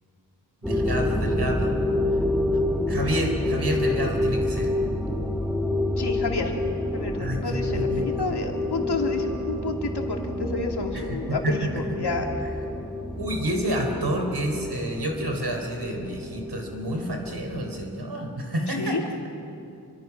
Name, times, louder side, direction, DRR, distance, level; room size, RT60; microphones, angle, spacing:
sound 1, 0.6-18.0, left 1 dB, ahead, 1.9 m, -28 dB
voice 1, 0.6-1.7 2.9-4.7 7.1-8.3 10.9-11.7 13.2-19.0, right 1 dB, 85° right, 3 dB, 4.1 m, -29 dB
voice 2, 6.0-6.5 6.9-12.3 18.8-19.0, left 3 dB, 85° left, 1 dB, 2.9 m, -30 dB
29.5 x 25.0 x 6.1 m, 2.6 s
wide cardioid pair, 75°, 39 cm